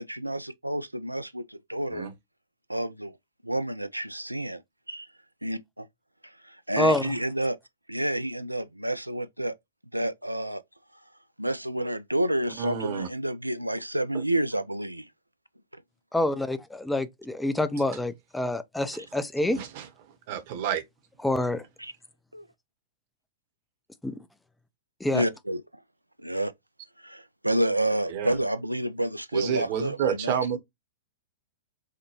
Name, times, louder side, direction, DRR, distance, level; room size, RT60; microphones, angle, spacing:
voice 1, 0.0-2.1 2.7-3.1 3.4-4.6 4.9-5.1 5.4-5.9 6.2-7.6 7.9-9.6 9.9-10.6 11.4-15.1 15.7-15.8 21.8-21.9 22.3-22.4 25.1-25.6 26.2-26.5 27.0-30.4, right 1 dB, 85° right, 0.4 m, -29 dB
voice 2, 12.6-13.1 14.1-14.2 19.5-19.9 20.3-20.8 28.1-28.4 29.3-30.6, right 8 dB, 45° right, 0.9 m, -29 dB
voice 3, 16.1-19.6 21.2-21.6 24.0-24.1 25.0-25.2, left 1 dB, 5° left, 0.4 m, -27 dB
4.9 x 2.1 x 2.8 m
figure-of-eight pair, 105°, 0 cm